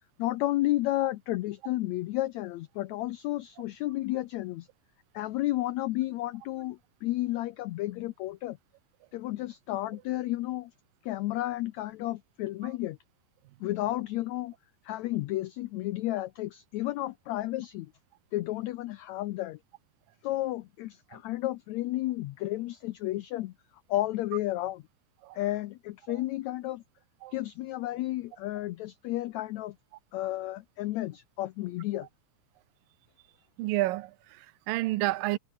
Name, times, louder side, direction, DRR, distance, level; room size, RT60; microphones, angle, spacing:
voice 1, 0.2-4.7 5.1-8.6 9.1-10.7 11.0-13.0 13.6-14.5 14.8-17.9 18.3-19.6 20.2-23.5 23.9-24.8 25.3-26.8 27.3-29.7 30.1-32.1, left 16 dB, 85° left, 1.6 m, -32 dB
voice 2, 33.6-35.4, right 18 dB, 80° right, 2.4 m, -30 dB
omnidirectional pair, 4.0 m